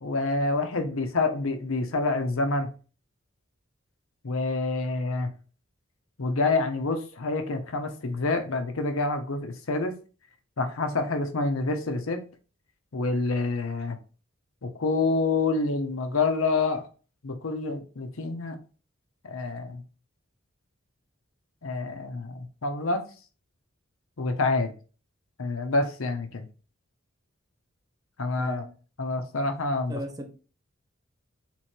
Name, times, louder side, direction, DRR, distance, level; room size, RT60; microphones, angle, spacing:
voice 1, 0.0-2.7 4.2-5.3 6.2-10.0 10.6-12.2 12.9-14.0 14.6-16.9 17.2-18.6 19.2-19.8 21.6-23.0 24.2-24.7 25.4-26.5 28.2-28.7 29.0-30.0, left 3 dB, 80° left, 0.7 m, -27 dB
voice 2, 29.9-30.3, right 1 dB, 20° right, 0.8 m, -36 dB
3.7 x 3.1 x 4.3 m
head